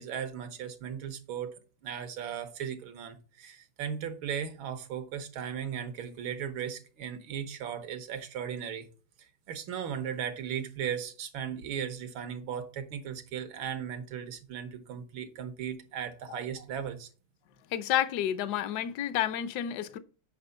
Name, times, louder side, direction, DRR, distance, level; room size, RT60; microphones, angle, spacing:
voice 1, 0.0-1.5 1.8-8.9 9.2-17.1, right 8 dB, 80° right, 1.9 m, -37 dB
voice 2, 17.7-20.0, left 11 dB, 65° left, 1.1 m, -30 dB
8.0 x 5.8 x 4.0 m
omnidirectional pair, 2.2 m